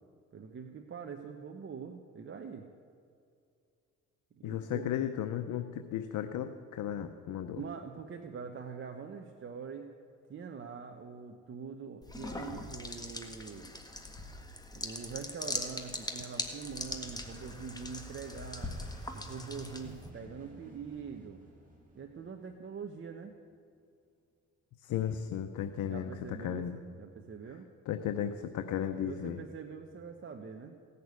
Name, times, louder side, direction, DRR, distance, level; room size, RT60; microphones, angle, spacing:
voice 1, 0.3-2.7 4.4-4.9 7.5-9.9 10.3-13.7 14.7-18.7 19.1-21.4 21.9-23.3 25.9-27.7 29.0-30.7, right 6 dB, 40° right, 4 dB, 1.0 m, -44 dB
voice 2, 4.4-7.6 24.8-26.8 27.9-29.4, left 10 dB, 75° left, 8 dB, 0.8 m, -35 dB
sound 1, 12.0-20.1, left 2 dB, 15° left, 1.6 m, -41 dB
sound 2, 16.7-23.3, right 1 dB, 25° right, 4.1 m, -53 dB
17.0 x 6.8 x 9.5 m, 2.4 s
cardioid pair, 90°, 30 cm